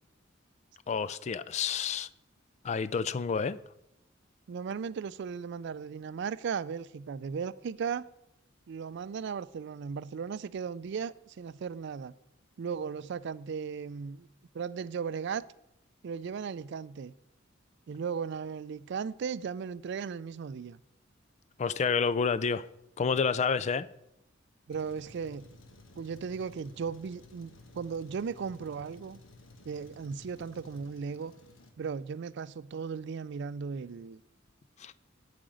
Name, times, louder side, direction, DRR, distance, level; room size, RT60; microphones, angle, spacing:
voice 1, 0.9-2.1 2.6-3.6 21.6-22.6 23.0-23.9 34.8-34.9, left 5 dB, 35° left, 0.3 m, -29 dB
voice 2, 4.5-8.1 8.7-12.1 12.6-14.3 14.5-15.4 16.0-17.1 17.9-20.8 24.7-25.5 26.0-29.2 29.7-31.3 31.8-34.2, right 6 dB, 60° right, 0.3 m, -36 dB
Truck, 24.7-31.7, left 2 dB, 85° left, 1.3 m, -55 dB
8.6 x 5.1 x 7.6 m
head